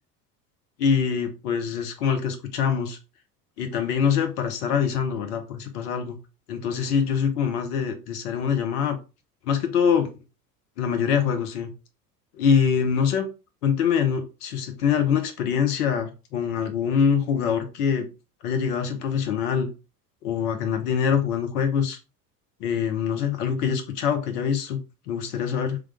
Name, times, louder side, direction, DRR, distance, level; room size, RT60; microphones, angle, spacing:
voice 1, 0.8-3.0 3.6-6.2 6.5-9.0 9.4-10.1 10.8-11.7 12.3-13.3 13.6-18.1 18.4-19.7 20.2-22.0 22.6-24.8 25.1-25.8, left 7 dB, 65° left, 6 dB, 1.1 m, -24 dB
3.7 x 3.2 x 3.4 m, 0.30 s
figure-of-eight pair, 70°, 49 cm